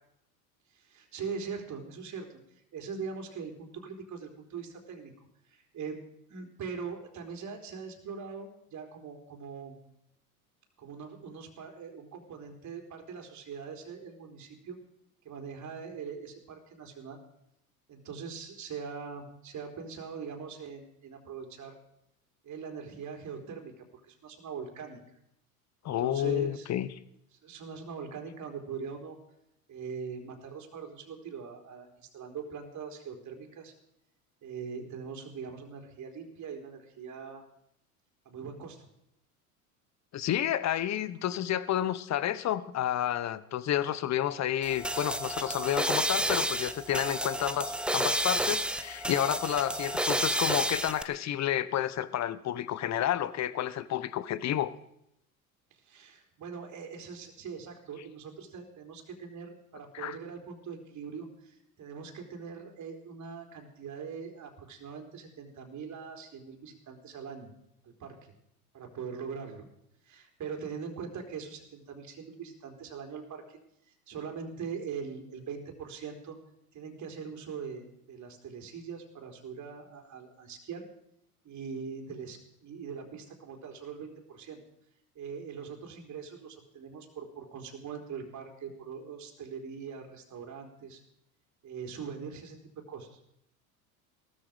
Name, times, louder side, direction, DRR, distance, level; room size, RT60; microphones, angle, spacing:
voice 1, 0.7-2.4 2.7-5.1 5.5-6.0 6.3-9.8 10.8-14.8 15.2-17.2 17.9-21.7 22.4-25.0 25.8-26.7 27.4-29.2 29.7-33.7 34.4-37.4 38.3-38.9 55.7-67.5 67.8-68.3 68.7-69.7 70.0-73.6 74.1-76.4 76.7-80.9 81.4-84.6 85.2-91.0 91.6-92.6 92.9-93.2, right 6 dB, 40° right, 3 dB, 3.9 m, -42 dB
voice 2, 25.8-26.9 40.1-54.7 59.9-60.2, left 11 dB, 40° left, 16 dB, 1.2 m, -30 dB
sound 1, 44.6-51.0, right 1 dB, ahead, 0.8 m, -31 dB
17.5 x 13.5 x 5.2 m, 0.76 s
hypercardioid pair, 80°, 43 cm